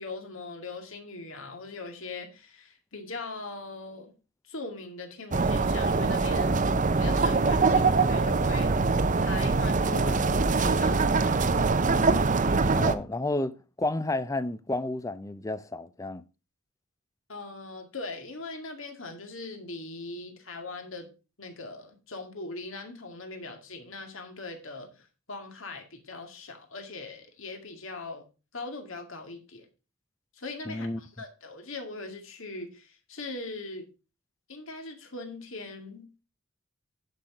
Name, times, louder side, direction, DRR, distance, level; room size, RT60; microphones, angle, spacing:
voice 1, 0.0-4.1 4.4-8.7 9.2-11.9 17.3-21.1 21.4-28.2 28.5-29.7 30.3-33.9 34.5-36.1, left 3 dB, 65° left, 2.1 m, -40 dB
sound 1, 5.3-12.9, right 3 dB, 35° right, 0.6 m, -23 dB
voice 2, 12.7-16.2 30.7-31.0, left 2 dB, 15° left, 0.5 m, -31 dB
10.5 x 6.0 x 4.9 m
head